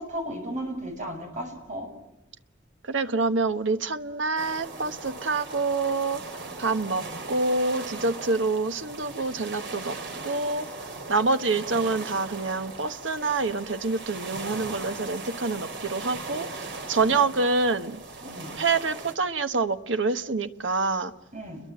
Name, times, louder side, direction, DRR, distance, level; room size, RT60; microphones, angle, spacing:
voice 1, 0.0-1.9 17.0-17.2 18.2-18.5 21.3-21.6, equal, 40° right, 3 dB, 7.1 m, -35 dB
voice 2, 2.9-6.2 6.6-10.0 10.2-10.7 11.1-18.0 18.5-21.1, right 3 dB, 80° right, 9 dB, 1.2 m, -26 dB
sound 1, 4.4-19.1, right 3 dB, 65° right, 3.4 m, -39 dB
30.0 x 22.5 x 7.8 m, 0.87 s
head